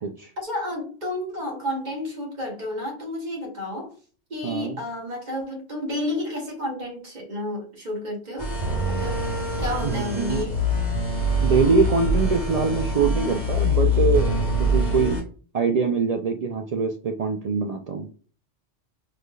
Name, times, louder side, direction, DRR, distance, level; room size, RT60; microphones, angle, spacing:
voice 1, 0.4-3.9 4.3-8.5 8.8-10.6, left 1 dB, 40° right, -1 dB, 1.5 m, -31 dB
voice 2, 4.4-4.8 9.8-10.5 11.4-14.3 14.6-15.2 15.5-18.1, right 5 dB, 70° right, 4 dB, 0.3 m, -23 dB
sound 1, 8.4-15.2, left 1 dB, 35° left, 1.5 m, -24 dB
3.9 x 3.2 x 2.2 m, 0.40 s
omnidirectional pair, 1.2 m